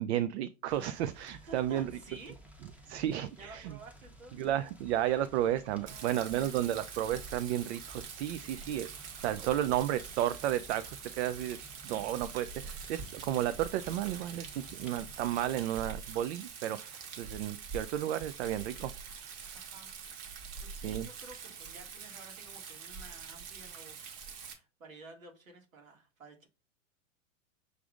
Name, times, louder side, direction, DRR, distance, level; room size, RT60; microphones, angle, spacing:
voice 1, 0.0-1.9 2.8-3.8 4.4-8.9 9.2-11.6 11.8-19.7 20.7-21.1, right 12 dB, 55° right, 0.5 m, -33 dB
sound 1, 0.7-15.6, equal, 5° right, 0.9 m, -55 dB
voice 2, 1.5-2.4 2.7-4.5 5.8-6.6 8.2-8.6 13.0-13.2 19.5-20.0 20.6-24.0 24.4-26.5, right 3 dB, 90° right, 2.0 m, -53 dB
Rain, 5.9-24.5, right 6 dB, 40° right, 1.4 m, -45 dB
6.3 x 3.4 x 2.4 m
hypercardioid pair, 110°, 40 cm